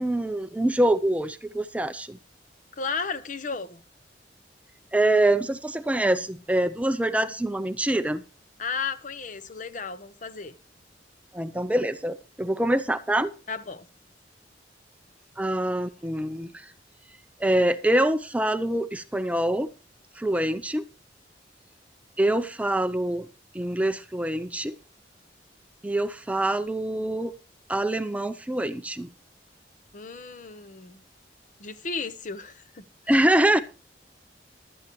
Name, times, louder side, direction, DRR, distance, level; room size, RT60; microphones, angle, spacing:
voice 1, 0.0-2.2 4.9-8.2 11.3-13.3 15.4-16.7 17.4-19.7 20.2-20.8 22.2-23.3 23.5-24.7 25.8-27.3 27.7-29.1 33.1-33.6, right 1 dB, 10° right, 0.5 m, -25 dB
voice 2, 2.8-3.8 8.6-10.5 13.5-13.9 29.9-31.0 31.6-32.8, left 5 dB, 45° left, 0.8 m, -34 dB
15.0 x 12.0 x 3.1 m
head